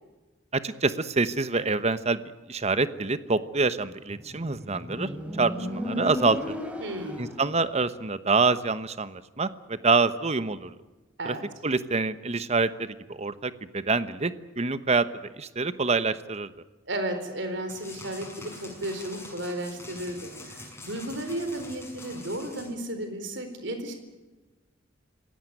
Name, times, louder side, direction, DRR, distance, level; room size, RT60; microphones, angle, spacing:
voice 1, 0.5-2.2 2.5-5.1 5.4-6.6 7.2-10.7 11.2-11.3 11.6-15.1 15.4-16.5, right 3 dB, 35° right, 13 dB, 1.1 m, -26 dB
Motorcycle, 4.1-7.6, equal, 5° right, 3.2 m, -35 dB
voice 2, 6.8-7.3 11.2-11.4 16.9-23.9, right 1 dB, 65° right, 7 dB, 4.1 m, -34 dB
sound 1, 17.7-22.7, left 2 dB, 15° left, 6.9 m, -45 dB
27.0 x 17.0 x 9.3 m, 1.2 s
head